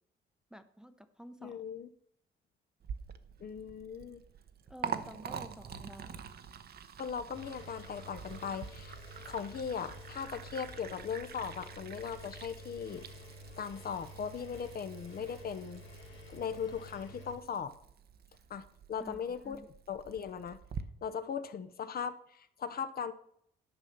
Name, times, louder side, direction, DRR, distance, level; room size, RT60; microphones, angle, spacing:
voice 1, 0.5-1.6 4.7-6.3 19.0-19.7, equal, 5° right, 8 dB, 0.8 m, -50 dB
voice 2, 1.4-1.9 3.4-4.2 7.0-9.0 9.3-13.0 13.6-15.8 16.3-17.7 18.5-19.6 19.9-20.6 21.0-23.1, left 7 dB, 50° left, 11 dB, 0.8 m, -39 dB
Liquid, 2.8-20.8, right 7 dB, 50° right, 0.9 m, -46 dB
Engine, 7.3-17.3, equal, 70° left, 2.7 m, -51 dB
10.5 x 5.6 x 6.7 m, 0.67 s
cardioid pair, 90°, 20 cm